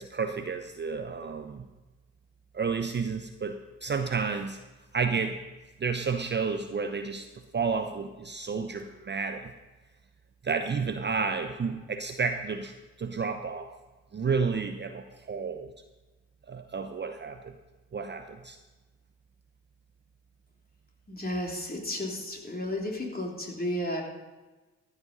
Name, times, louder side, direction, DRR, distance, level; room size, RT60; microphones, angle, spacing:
voice 1, 0.0-1.7 2.5-4.6 4.9-5.4 5.8-9.5 10.4-13.7 14.1-15.7 16.5-17.6 17.9-18.6, right 5 dB, 30° right, 7 dB, 0.8 m, -31 dB
voice 2, 21.1-24.0, left 1 dB, 25° left, 0 dB, 3.3 m, -33 dB
14.0 x 8.0 x 5.4 m, 1.2 s
hypercardioid pair, 40°, 38 cm